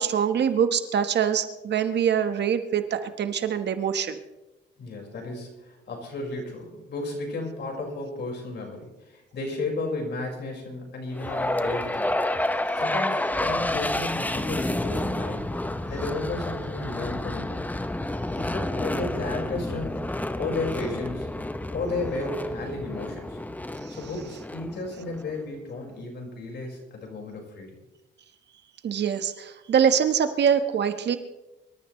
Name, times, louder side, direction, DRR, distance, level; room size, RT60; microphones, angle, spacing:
voice 1, 0.0-4.2 23.8-24.0 28.8-31.2, right 8 dB, 60° right, 9 dB, 1.3 m, -24 dB
voice 2, 4.8-12.2 12.8-15.5 15.9-17.6 18.4-19.9 20.4-21.3 21.7-23.4 23.9-27.7, left 2 dB, 60° left, 1 dB, 5.1 m, -33 dB
sound 1, 11.2-25.3, left 1 dB, 10° left, 0.8 m, -30 dB
25.0 x 13.5 x 3.2 m, 1.0 s
cardioid pair, 90°, 20 cm